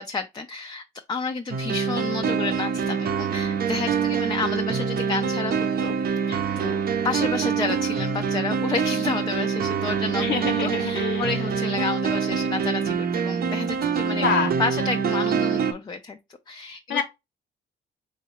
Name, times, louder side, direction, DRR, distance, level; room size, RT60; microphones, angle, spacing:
voice 1, 0.0-5.9 6.3-6.8 7.0-10.3 10.6-14.3 14.6-16.2 16.5-17.0, left 4 dB, 20° left, 0.4 m, -30 dB
sound 1, 1.5-15.7, right 6 dB, 50° right, 0.6 m, -25 dB
voice 2, 10.2-11.4 14.1-14.6 16.9-17.0, left 6 dB, 70° left, 0.6 m, -26 dB
3.7 x 3.1 x 2.9 m
cardioid pair, 90°, 20 cm